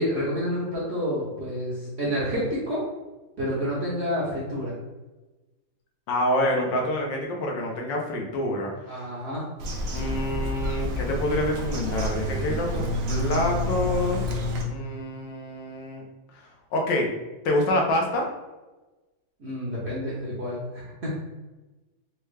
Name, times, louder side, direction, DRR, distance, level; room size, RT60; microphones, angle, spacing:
voice 1, 0.0-2.8 3.4-4.8 8.9-9.5 19.4-21.2, equal, 55° right, -7 dB, 0.8 m, -29 dB
voice 2, 6.1-9.0 9.9-14.2 14.7-16.0 16.7-17.1 17.4-18.3, left 1 dB, 80° left, 0 dB, 1.4 m, -27 dB
Bird vocalization bird call bird song, 9.6-14.6, left 1 dB, 70° right, 1.2 m, -29 dB
4.3 x 2.3 x 3.2 m, 1.1 s
omnidirectional pair, 2.0 m